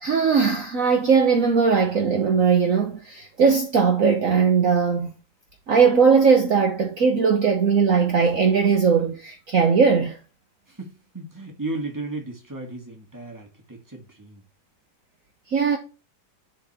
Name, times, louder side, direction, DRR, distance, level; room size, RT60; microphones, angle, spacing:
voice 1, 0.0-5.1 5.7-10.2 15.5-15.8, right 5 dB, 50° right, 1.4 m, -19 dB
voice 2, 10.7-14.4, right 2 dB, 10° right, 2.2 m, -35 dB
11.0 x 4.5 x 4.3 m
omnidirectional pair, 1.9 m